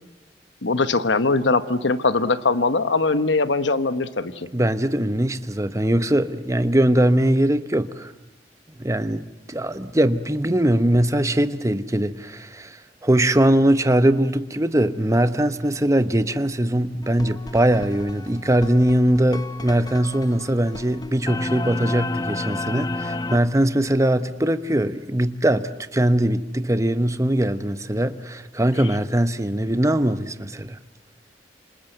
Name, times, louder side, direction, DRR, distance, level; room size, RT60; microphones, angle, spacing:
voice 1, 0.6-4.5, left 3 dB, 85° left, 1.2 m, -21 dB
voice 2, 4.5-8.1 8.8-12.8 13.0-30.8, right 1 dB, 15° right, 1.0 m, -21 dB
sound 1, 17.0-23.4, left 2 dB, 20° left, 0.9 m, -31 dB
28.0 x 27.0 x 7.9 m
head